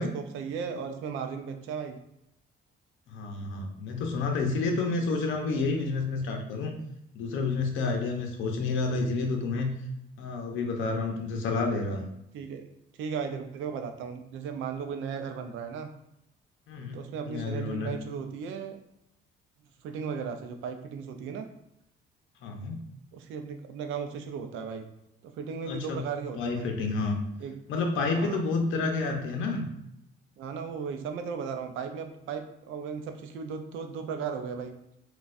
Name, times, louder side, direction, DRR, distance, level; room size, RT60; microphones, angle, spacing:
voice 1, 0.0-2.0 4.9-5.0 12.3-12.6 13.0-15.9 16.9-18.8 19.8-21.5 23.1-24.9 25.2-26.7 27.4-27.5 28.1-28.4 28.7-28.8 30.4-34.8, right 6 dB, 90° right, 6 dB, 0.5 m, -36 dB
voice 2, 3.1-6.7 7.1-9.7 10.2-12.1 16.7-17.0 17.3-17.9 22.4-22.8 25.7-26.0 26.4-27.2 27.7-29.7, left 3 dB, 80° left, 3 dB, 0.6 m, -29 dB
4.0 x 2.3 x 2.5 m, 0.83 s
cardioid pair, 90°, 20 cm